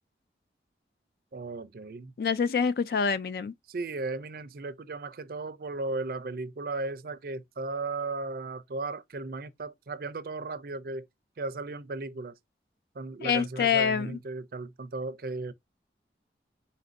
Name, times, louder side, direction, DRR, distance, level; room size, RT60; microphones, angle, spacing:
voice 1, 1.3-2.1 3.7-11.1 11.4-12.3 13.0-15.5, right 3 dB, 55° right, 0.4 m, -36 dB
voice 2, 2.2-3.5 13.2-14.2, left 6 dB, 55° left, 0.3 m, -26 dB
4.3 x 2.5 x 3.9 m
head